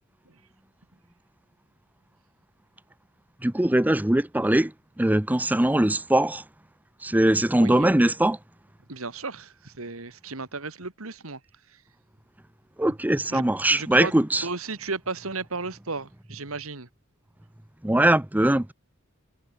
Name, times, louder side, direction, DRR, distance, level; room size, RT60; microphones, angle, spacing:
voice 1, 3.4-4.7 5.0-6.4 7.0-8.4 12.8-14.5 17.8-18.7, right 1 dB, 10° right, 0.6 m, -21 dB
voice 2, 7.6-7.9 8.9-11.4 13.3-13.4 13.7-14.1 14.4-16.9, right 3 dB, 80° right, 2.2 m, -34 dB
head